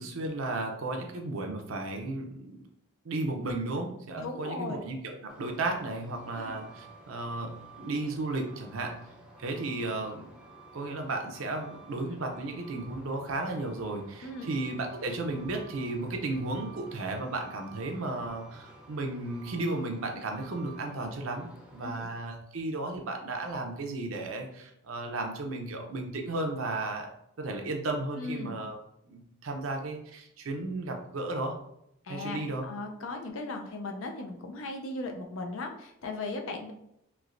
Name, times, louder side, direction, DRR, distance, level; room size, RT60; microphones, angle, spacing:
voice 1, 0.0-2.6 3.0-8.9 9.4-10.3 10.7-27.1 27.4-28.8 29.1-31.5 32.1-32.6, right 2 dB, 70° right, 3 dB, 0.6 m, -34 dB
voice 2, 4.2-4.8 6.3-6.5 14.2-14.5 21.8-22.1 28.2-28.6 32.0-36.7, left 2 dB, 65° left, 3 dB, 0.5 m, -37 dB
Truck, 5.3-22.0, right 2 dB, 5° right, 0.5 m, -52 dB
3.2 x 3.0 x 2.5 m, 0.77 s
head